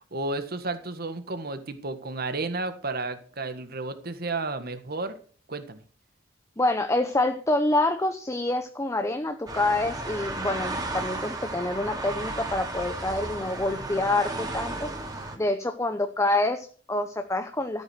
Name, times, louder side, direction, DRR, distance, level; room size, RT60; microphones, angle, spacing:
voice 1, 0.1-5.2 5.5-5.8, right 3 dB, 50° right, 9 dB, 1.6 m, -32 dB
voice 2, 6.6-14.9 15.4-17.8, left 2 dB, 15° left, 7 dB, 0.8 m, -27 dB
sound 1, 9.5-15.4, right 2 dB, 20° right, 2.5 m, -34 dB
13.5 x 9.1 x 6.0 m, 0.42 s
head